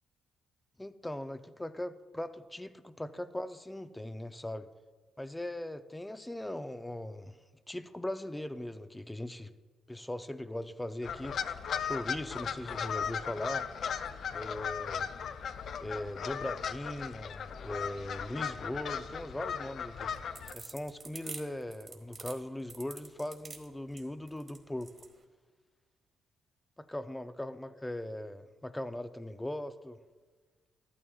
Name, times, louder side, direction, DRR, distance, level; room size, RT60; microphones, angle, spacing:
voice 1, 0.8-4.7 5.2-7.4 7.7-9.5 9.9-13.7 14.3-15.1 15.8-20.1 20.5-24.9 26.8-30.0, left 1 dB, 10° left, 0.5 m, -39 dB
sound 1, 11.0-20.5, left 7 dB, 60° left, 0.5 m, -37 dB
sound 2, 20.1-25.1, right 4 dB, 40° right, 1.5 m, -46 dB
13.5 x 12.5 x 2.4 m
cardioid pair, 90°, 0 cm